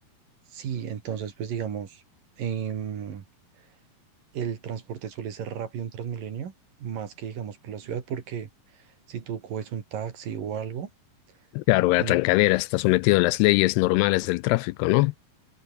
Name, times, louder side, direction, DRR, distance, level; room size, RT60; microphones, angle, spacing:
voice 1, 0.5-2.0 2.4-3.2 4.3-6.5 6.8-10.9 12.0-12.2, right 8 dB, 55° right, 3.9 m, -34 dB
voice 2, 11.6-15.1, left 21 dB, 80° left, 2.5 m, -21 dB
omnidirectional pair, 4.9 m